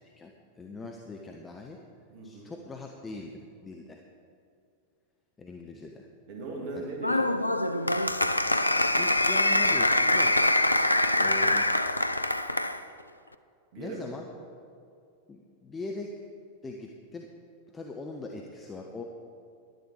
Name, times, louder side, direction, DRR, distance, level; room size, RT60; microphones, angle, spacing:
voice 1, 0.0-1.8 2.2-4.0 5.4-6.1 6.7-6.8 8.9-10.5 11.2-11.7 13.8-14.3 15.3-16.1 16.6-17.3 17.7-19.0, left 3 dB, 15° left, 2 dB, 0.8 m, -41 dB
voice 2, 2.1-2.5 6.3-8.0 13.7-14.1, right 2 dB, 45° right, -1 dB, 2.2 m, -39 dB
Applause, 7.0-12.8, left 1 dB, 85° left, 0.4 m, -24 dB
11.0 x 10.5 x 4.8 m, 2.4 s
figure-of-eight pair, 90°, 0 cm